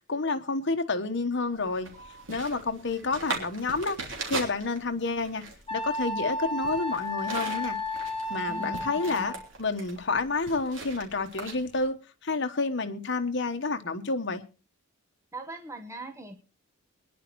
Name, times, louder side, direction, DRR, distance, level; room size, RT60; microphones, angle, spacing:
voice 1, 0.1-1.9 2.3-4.0 4.3-5.4 5.7-7.8 8.3-14.4, left 3 dB, 60° left, 1.2 m, -29 dB
sound 1, 1.5-11.9, right 3 dB, 70° right, 3.3 m, -40 dB
Wind instrument woodwind instrument, 5.7-9.5, left 1 dB, 25° left, 1.4 m, -33 dB
voice 2, 8.5-9.4 15.3-16.3, right 1 dB, 15° right, 1.1 m, -41 dB
24.0 x 10.5 x 3.1 m
head